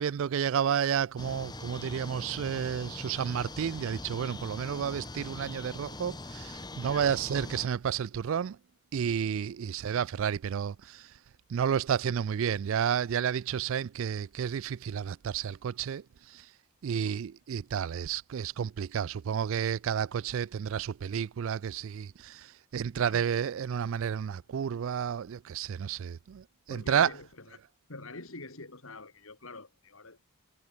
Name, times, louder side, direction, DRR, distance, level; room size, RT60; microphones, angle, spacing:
voice 1, 0.0-8.6 8.9-11.1 11.5-16.0 16.3-16.4 16.8-27.1, right 8 dB, 65° right, 0.3 m, -31 dB
sound 1, 1.2-7.7, left 2 dB, 20° left, 2.1 m, -42 dB
voice 2, 22.9-23.2 26.7-27.6 27.9-30.3, left 3 dB, 70° left, 3.1 m, -46 dB
head